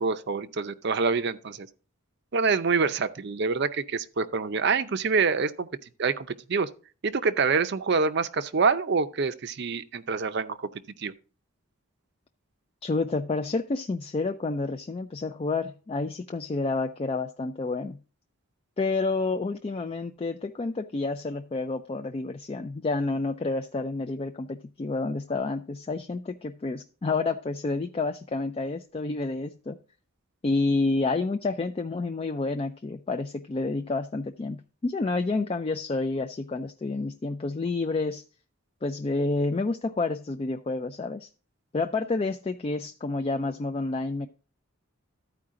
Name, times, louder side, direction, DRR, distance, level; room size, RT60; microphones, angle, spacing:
voice 1, 0.0-1.7 2.3-5.7 6.0-6.7 7.0-10.7 11.0-11.1, right 4 dB, 50° right, 0.6 m, -26 dB
voice 2, 12.8-18.0 18.8-29.8 30.4-38.2 38.8-41.3 41.7-44.3, left 3 dB, 25° left, 0.3 m, -29 dB
13.0 x 4.7 x 3.7 m
head